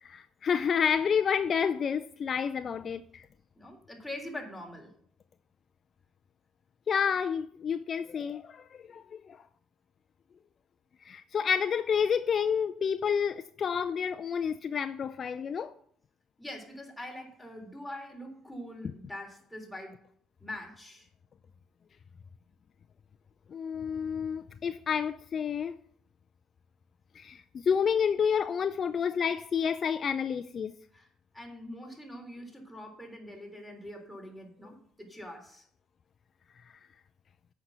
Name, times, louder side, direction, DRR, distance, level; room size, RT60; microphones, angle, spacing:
voice 1, 0.0-3.3 6.9-9.5 11.0-15.7 23.5-25.8 27.1-30.7, left 7 dB, 45° left, 0.5 m, -29 dB
voice 2, 3.6-4.9 16.4-20.0 20.4-21.1 30.9-31.1 31.3-35.7, left 1 dB, 5° left, 3.5 m, -43 dB
8.5 x 5.8 x 8.1 m
supercardioid pair, 75°, 0 cm